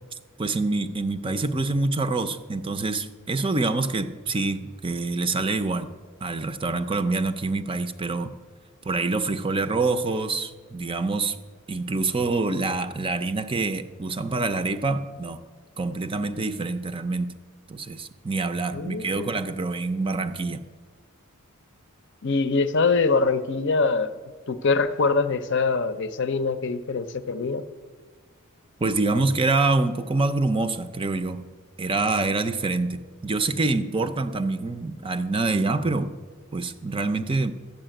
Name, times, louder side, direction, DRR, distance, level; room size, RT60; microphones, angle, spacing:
voice 1, 0.4-5.9 6.2-8.3 8.8-11.4 11.7-15.4 15.8-17.3 17.7-20.6 28.8-31.4 31.8-36.1 36.5-37.5, right 3 dB, 25° right, 10 dB, 0.5 m, -26 dB
voice 2, 18.7-19.4 22.2-24.2 24.5-27.7, left 4 dB, 55° left, 11 dB, 0.6 m, -24 dB
12.5 x 7.3 x 8.9 m, 1.5 s
head